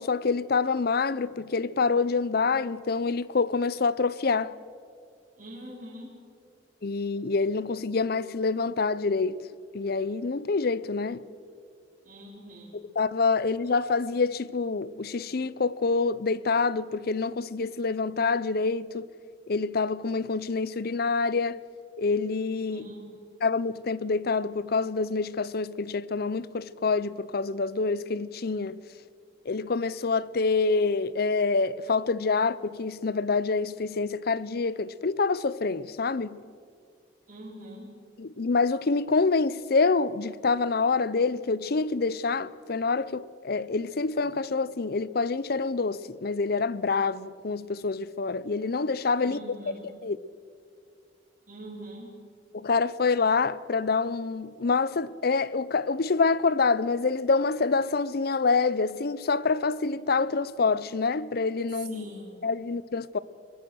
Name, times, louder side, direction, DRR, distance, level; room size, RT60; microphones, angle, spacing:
voice 1, 0.0-4.5 6.8-9.4 9.7-11.2 12.7-19.1 19.5-21.6 22.0-22.9 23.4-28.8 29.5-36.4 38.2-49.6 50.0-50.2 52.5-62.1 62.4-63.2, left 4 dB, 60° left, 0.6 m, -26 dB
voice 2, 5.4-6.1 12.0-12.8 22.7-23.1 37.3-37.9 49.2-49.9 51.5-52.1 61.7-62.4, right 1 dB, 45° right, 4.5 m, -43 dB
23.0 x 20.5 x 6.3 m
head